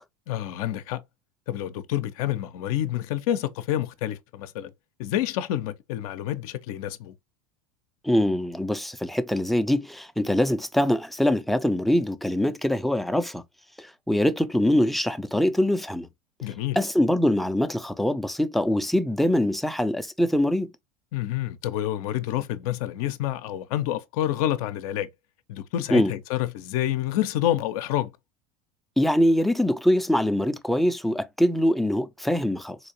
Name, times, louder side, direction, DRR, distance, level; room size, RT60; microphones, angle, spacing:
voice 1, 0.3-1.0 1.5-4.7 5.0-7.1 16.4-16.8 21.1-25.1 25.5-28.1, left 12 dB, 65° left, 0.5 m, -28 dB
voice 2, 8.0-13.4 13.8-16.1 16.8-20.7 25.9-26.1 29.0-32.8, left 1 dB, ahead, 0.4 m, -23 dB
4.1 x 2.5 x 2.8 m
hypercardioid pair, 85°, 20 cm